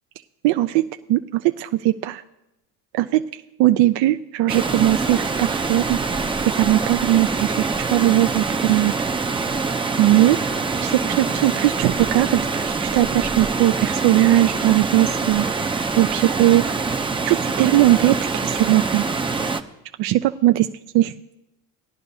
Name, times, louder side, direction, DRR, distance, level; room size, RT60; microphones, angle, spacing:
voice 1, 0.4-2.2 2.9-6.0 6.5-8.9 10.0-10.4 10.8-15.5 16.0-16.6 17.2-19.1 20.0-20.7 20.9-21.1, right 15 dB, 60° right, 8 dB, 0.5 m, -19 dB
Water, 4.5-19.6, right 4 dB, 10° right, 0.5 m, -25 dB
18.0 x 10.5 x 2.7 m, 0.92 s
supercardioid pair, 85°, 46 cm